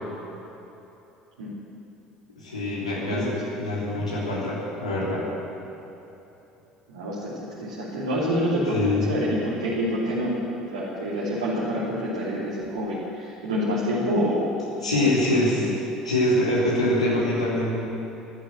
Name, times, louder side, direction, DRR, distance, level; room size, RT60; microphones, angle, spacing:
voice 1, 2.4-5.3 8.7-9.1 14.8-15.6 16.0-17.7, left 1 dB, 80° left, -6 dB, 3.0 m, -24 dB
voice 2, 3.0-3.3 6.9-14.6 14.9-15.1 15.5-15.7, equal, 70° right, -10 dB, 3.1 m, -27 dB
14.0 x 12.0 x 7.6 m, 3.0 s
figure-of-eight pair, 60°, 3 cm